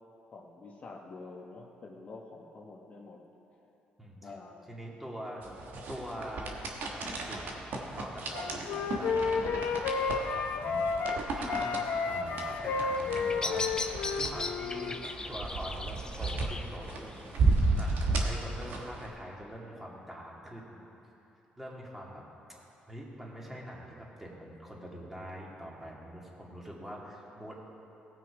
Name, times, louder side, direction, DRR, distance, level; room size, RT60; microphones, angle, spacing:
voice 1, 0.3-3.2 4.2-4.7 5.4-5.6, left 3 dB, 45° left, 0 dB, 1.0 m, -47 dB
voice 2, 4.0-4.3 4.7-5.4 5.9-6.6 6.9-10.0 10.3-11.0 11.3-14.9 15.3-20.8 21.6-22.2 22.5-27.6, equal, 10° right, -4 dB, 2.3 m, -44 dB
sound 1, 5.4-19.1, right 3 dB, 75° right, 1.3 m, -33 dB
Wind instrument woodwind instrument, 8.3-11.2 11.5-15.0, left 5 dB, 80° left, 0.8 m, -32 dB
Bird vocalization bird call bird song, 12.9-18.9, left 3 dB, 20° left, 0.6 m, -40 dB
16.5 x 6.1 x 4.8 m, 3.0 s
cardioid pair, 90°, 3 cm